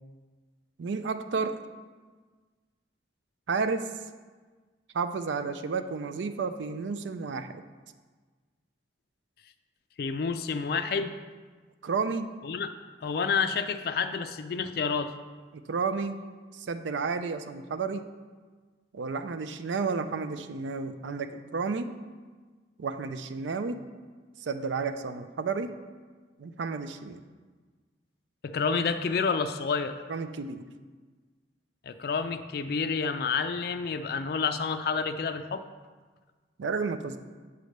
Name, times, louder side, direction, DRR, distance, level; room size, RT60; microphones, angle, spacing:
voice 1, 0.8-1.6 3.5-3.9 4.9-7.6 11.8-12.3 15.5-16.2 16.5-18.0 18.9-21.9 22.8-23.8 24.4-25.7 26.4-27.2 30.1-30.6 36.6-37.2, right 4 dB, 85° right, 10 dB, 0.4 m, -31 dB
voice 2, 10.0-11.1 12.4-12.7 13.0-15.1 28.4-30.0 31.9-35.6, left 5 dB, 55° left, 9 dB, 0.3 m, -29 dB
8.1 x 3.3 x 6.4 m, 1.4 s
head